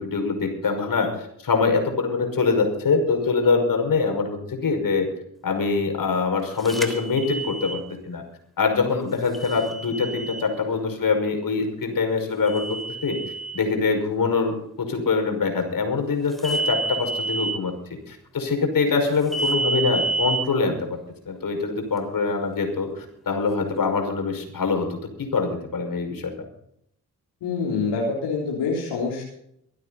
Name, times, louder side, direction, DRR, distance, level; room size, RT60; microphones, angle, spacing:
voice 1, 0.0-5.1 5.4-7.8 8.1-8.2 8.6-13.2 13.5-20.9 21.3-24.9 25.2-26.3, left 4 dB, 50° left, 4 dB, 5.9 m, -24 dB
sound 1, 6.7-7.8 9.3-10.4 12.5-13.5 16.4-17.5 19.3-20.4, right 3 dB, ahead, 3.4 m, -28 dB
voice 2, 27.4-29.2, left 4 dB, 70° left, -3 dB, 3.9 m, -26 dB
25.5 x 9.5 x 4.2 m, 0.72 s
hypercardioid pair, 40°, 44 cm